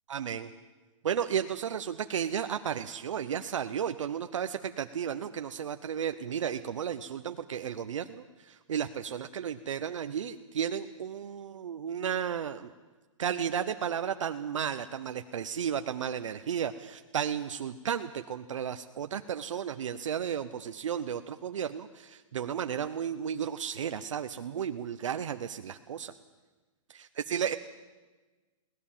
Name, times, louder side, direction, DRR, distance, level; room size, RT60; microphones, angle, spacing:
voice 1, 0.1-0.5 1.0-12.7 13.2-26.1 27.3-27.6, right 8 dB, 65° right, 8 dB, 0.8 m, -33 dB
21.5 x 17.5 x 7.4 m, 1.3 s
hypercardioid pair, 180°, 17 cm